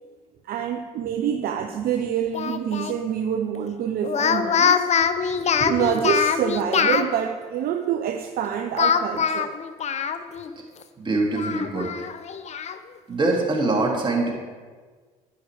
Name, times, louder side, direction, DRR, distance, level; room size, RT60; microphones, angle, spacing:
voice 1, 0.4-4.9 5.7-9.5, right 8 dB, 55° right, 5 dB, 0.6 m, -26 dB
Speech, 2.3-3.0 4.0-7.1 8.8-10.5 10.8-10.9 11.3-12.8, left 7 dB, 35° left, 0.6 m, -23 dB
voice 2, 5.2-5.7 10.6-10.7 11.0-11.9 13.1-14.3, right 2 dB, 25° right, -2 dB, 2.7 m, -24 dB
9.9 x 9.2 x 3.5 m, 1.5 s
hypercardioid pair, 60°, 19 cm